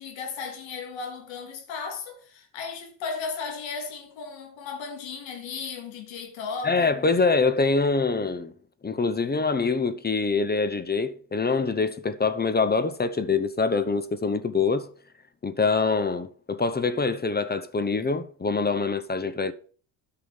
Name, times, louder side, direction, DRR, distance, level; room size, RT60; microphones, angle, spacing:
voice 1, 0.0-6.9, left 5 dB, 75° left, 2.9 m, -35 dB
voice 2, 6.6-8.5 8.8-14.9 15.4-19.5, left 4 dB, 20° left, 0.9 m, -25 dB
9.4 x 5.9 x 6.5 m
supercardioid pair, 90°, 45 cm